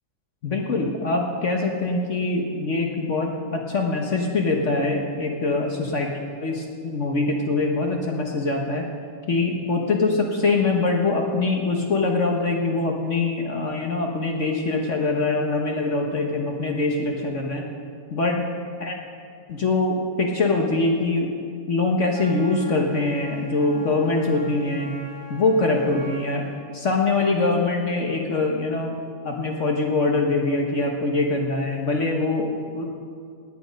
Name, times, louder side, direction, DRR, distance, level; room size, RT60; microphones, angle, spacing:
voice 1, 0.4-6.1 6.4-8.9 9.3-17.7 18.1-18.5 18.8-19.0 19.5-21.3 21.7-25.0 25.3-28.9 29.2-32.9, left 3 dB, 50° left, 1 dB, 1.3 m, -23 dB
Wind instrument woodwind instrument, 22.1-26.6, left 1 dB, 55° right, 5.1 m, -42 dB
17.5 x 8.8 x 5.2 m, 2.2 s
omnidirectional pair, 1.9 m